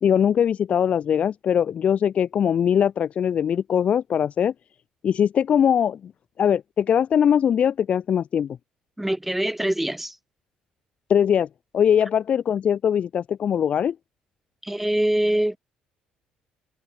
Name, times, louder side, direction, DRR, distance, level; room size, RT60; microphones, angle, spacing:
voice 1, 0.0-4.5 5.0-6.1 6.4-8.6 11.1-11.5 11.7-13.9, left 8 dB, 50° left, 1.0 m, -21 dB
voice 2, 9.0-10.2 14.6-15.6, right 1 dB, 5° right, 1.1 m, -24 dB
supercardioid pair, 80°, 3 cm